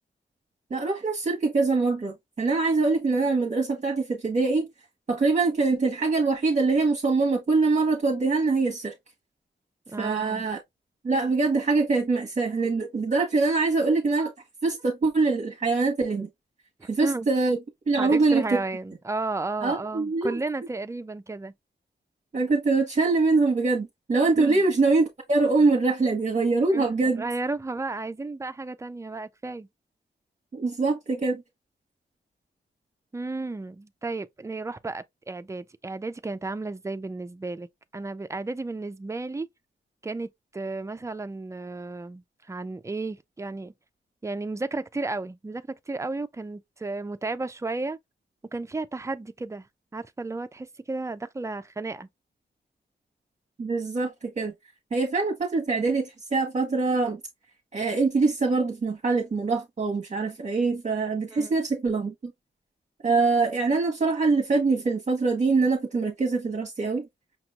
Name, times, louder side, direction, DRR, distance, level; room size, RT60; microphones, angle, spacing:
voice 1, 0.7-4.7 5.1-8.9 10.0-10.6 11.0-14.3 14.6-16.3 16.9-17.6 17.9-18.6 19.6-20.4 22.3-27.2 30.5-31.4 53.6-54.5 54.9-57.2 57.7-62.3 63.0-67.1, right 3 dB, 40° right, 0.9 m, -24 dB
voice 2, 9.9-10.4 16.8-17.3 18.0-21.5 24.4-24.6 26.7-29.7 33.1-37.7 37.9-39.5 40.0-43.7 44.2-48.0 48.5-49.7 49.9-52.1 61.3-61.5, right 3 dB, 15° right, 0.4 m, -33 dB
5.8 x 3.0 x 2.3 m
wide cardioid pair, 140°, 19 cm